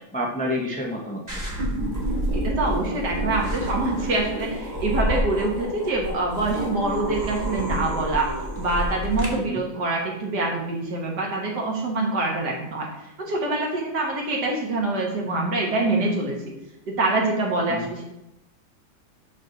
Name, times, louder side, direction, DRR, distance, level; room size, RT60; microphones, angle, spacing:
voice 1, 0.0-1.6 9.3-9.6 17.7-17.9, left 1 dB, 5° left, -2 dB, 0.6 m, -30 dB
sound 1, 1.3-9.3, right 1 dB, 20° right, 1.5 m, -28 dB
voice 2, 2.3-8.3 8.6-16.5 16.9-18.0, right 2 dB, 55° right, -1 dB, 1.9 m, -25 dB
6.1 x 5.8 x 4.0 m, 0.88 s
omnidirectional pair, 2.2 m